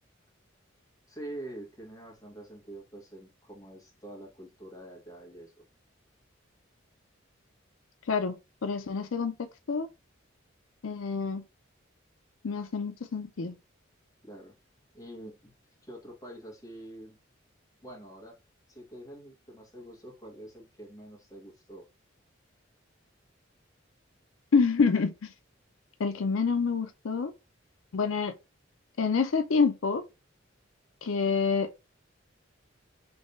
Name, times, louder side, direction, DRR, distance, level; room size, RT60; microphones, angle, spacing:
voice 1, 1.1-5.6 14.2-14.5 14.9-15.5 15.8-17.2 17.8-18.4 18.7-21.9, right 1 dB, 15° left, 1.6 m, -46 dB
voice 2, 8.6-9.3 9.7-9.9 10.8-11.4 12.4-13.6 24.5-25.3 26.0-27.3 27.9-28.3 29.0-30.0 31.0-31.7, left 5 dB, 85° left, 0.5 m, -27 dB
3.4 x 3.2 x 4.0 m
head